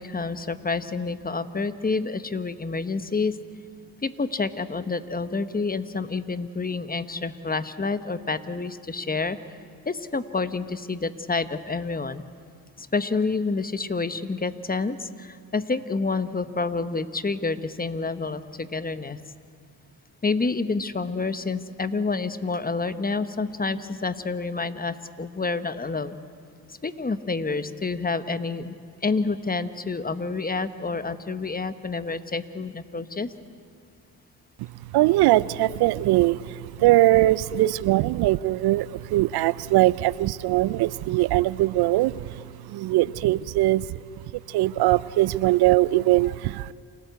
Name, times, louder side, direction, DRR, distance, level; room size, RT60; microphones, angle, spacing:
voice 1, 0.0-3.3 4.0-9.4 9.8-12.2 12.8-19.2 20.2-26.2 26.8-28.7 29.0-33.3 37.5-37.7, left 4 dB, 25° left, 12 dB, 1.1 m, -28 dB
voice 2, 34.6-44.0 44.5-46.7, right 17 dB, 75° right, 20 dB, 0.5 m, -21 dB
28.0 x 13.5 x 8.1 m, 2.3 s
supercardioid pair, 60°, 39 cm